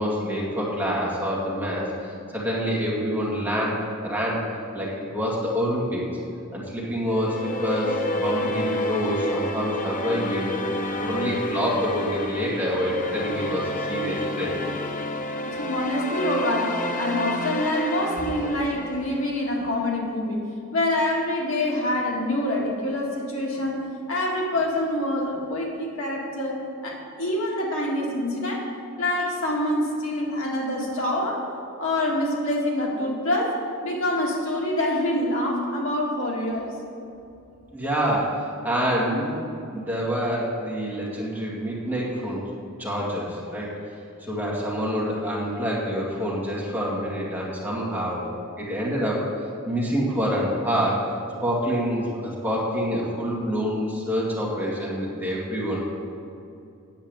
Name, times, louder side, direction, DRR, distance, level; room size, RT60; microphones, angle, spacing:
voice 1, 0.0-4.5 4.7-6.0 6.5-10.5 10.9-14.5 37.7-39.4 39.7-42.4 42.8-43.7 44.2-48.3 48.6-49.3 49.7-51.0 51.4-55.9, equal, 10° right, -5 dB, 2.0 m, -27 dB
sound 1, 7.1-19.5, left 1 dB, 35° left, 0.6 m, -30 dB
voice 2, 15.5-20.4 20.7-23.8 24.1-28.7 29.0-31.4 31.8-33.6 33.8-36.7, left 1 dB, 65° left, -3 dB, 2.0 m, -26 dB
8.8 x 7.3 x 7.9 m, 2.6 s
head